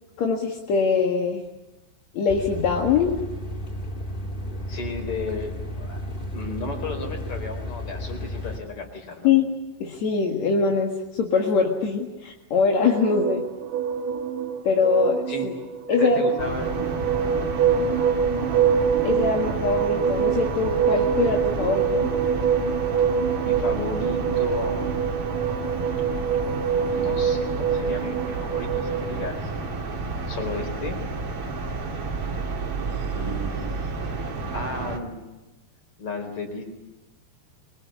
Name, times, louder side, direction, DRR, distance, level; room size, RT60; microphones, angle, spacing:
voice 1, 0.2-1.4 2.1-3.2 9.2-9.5 9.8-13.4 14.6-15.5 15.9-16.2 19.0-22.1, left 5 dB, 50° left, 0 dB, 2.5 m, -23 dB
sound 1, 2.3-8.6, left 1 dB, 75° left, 0.4 m, -33 dB
voice 2, 4.7-6.0 6.3-9.3 15.3-15.5 15.9-17.1 23.4-24.9 26.7-29.5 30.3-31.0 33.1-33.8 34.5-35.2 36.0-36.6, left 3 dB, 35° left, 5 dB, 4.9 m, -34 dB
sound 2, 12.8-29.3, right 7 dB, 70° right, 1.7 m, -25 dB
sound 3, 16.4-35.0, right 3 dB, 40° right, 3.0 m, -31 dB
24.0 x 24.0 x 8.5 m, 1.0 s
omnidirectional pair, 4.9 m